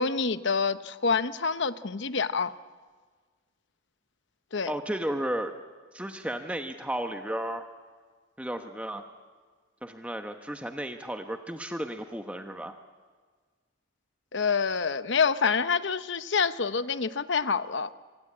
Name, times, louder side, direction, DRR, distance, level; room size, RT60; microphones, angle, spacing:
voice 1, 0.0-2.5 4.5-4.7 14.3-17.9, left 5 dB, 55° left, 13 dB, 0.8 m, -27 dB
voice 2, 4.7-5.5 5.9-7.6 8.4-9.0 9.8-12.7, right 1 dB, 5° right, 6 dB, 1.0 m, -33 dB
26.5 x 25.0 x 8.6 m, 1.5 s
head